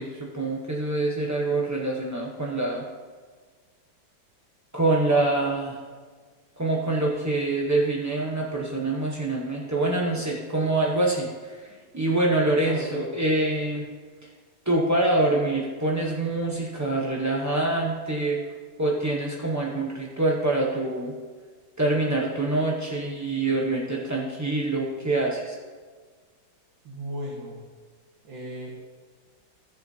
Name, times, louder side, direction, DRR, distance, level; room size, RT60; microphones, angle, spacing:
voice 1, 0.0-2.8 4.7-5.8 6.6-13.9 14.7-18.4 18.8-21.1 21.8-25.6, right 2 dB, 20° right, -3 dB, 0.4 m, -25 dB
voice 2, 12.6-13.0 26.8-27.6 28.2-28.8, right 1 dB, 80° right, -3 dB, 2.1 m, -36 dB
15.0 x 7.4 x 2.7 m, 1.5 s
omnidirectional pair, 2.0 m